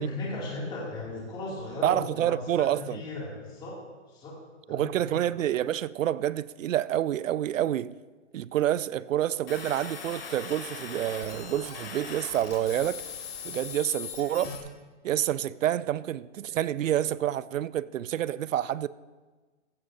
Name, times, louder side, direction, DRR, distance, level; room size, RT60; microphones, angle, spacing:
voice 1, 0.0-3.8 4.1-4.4 4.7-5.2, left 2 dB, 10° left, 2.5 m, -36 dB
voice 2, 1.8-3.0 4.7-7.9 8.3-13.0 13.4-14.5 15.0-18.9, right 11 dB, 85° right, 0.6 m, -28 dB
sound 1, 9.5-14.6, left 6 dB, 50° left, 2.1 m, -40 dB
15.5 x 12.5 x 2.7 m
hypercardioid pair, 170°, 38 cm